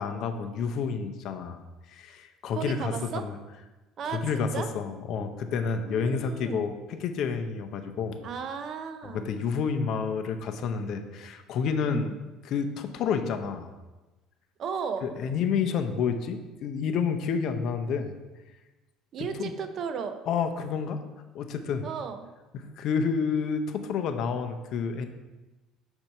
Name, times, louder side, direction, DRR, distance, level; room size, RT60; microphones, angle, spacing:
voice 1, 0.0-1.6 1.9-3.4 4.1-8.2 9.0-12.1 12.4-13.7 15.0-18.2 19.2-19.5 20.3-21.0 21.3-21.9 22.5-25.1, left 6 dB, 55° left, 7 dB, 0.6 m, -29 dB
voice 2, 2.5-3.3 4.0-4.7 5.9-6.7 8.2-9.3 11.8-12.1 14.6-15.1 19.1-20.2 21.8-22.3, right 6 dB, 45° right, 9 dB, 0.5 m, -35 dB
6.6 x 4.5 x 4.3 m, 1.1 s
cardioid pair, 135°, 0 cm